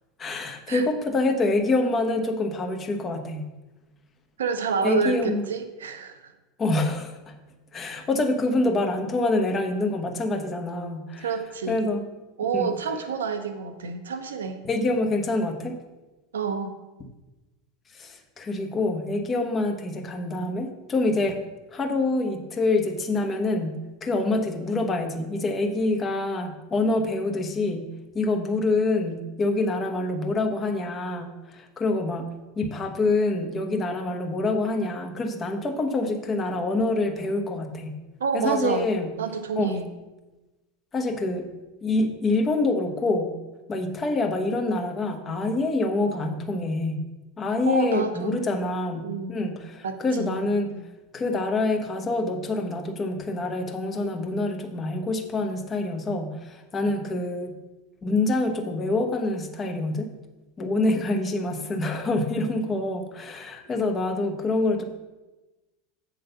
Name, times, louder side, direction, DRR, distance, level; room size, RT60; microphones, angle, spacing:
voice 1, 0.2-3.5 4.8-5.4 6.6-7.3 7.7-11.3 11.7-12.0 12.5-12.8 14.6-15.8 17.9-21.4 21.7-23.7 24.0-27.9 28.1-32.3 32.6-38.0 38.3-39.1 39.6-39.8 40.9-41.5 41.8-43.3 43.7-47.0 47.4-49.0 49.3-50.7 51.1-57.5 58.0-60.1 60.6-64.8, left 2 dB, 30° left, 5 dB, 1.1 m, -26 dB
voice 2, 4.4-6.3 11.2-11.9 12.4-14.6 16.3-16.8 38.2-38.9 39.2-39.9 47.6-48.4 49.0-49.3 49.8-50.8 60.8-61.2, right 5 dB, 80° right, 8 dB, 0.8 m, -29 dB
7.8 x 3.9 x 6.7 m, 1.1 s
hypercardioid pair, 90°, 0 cm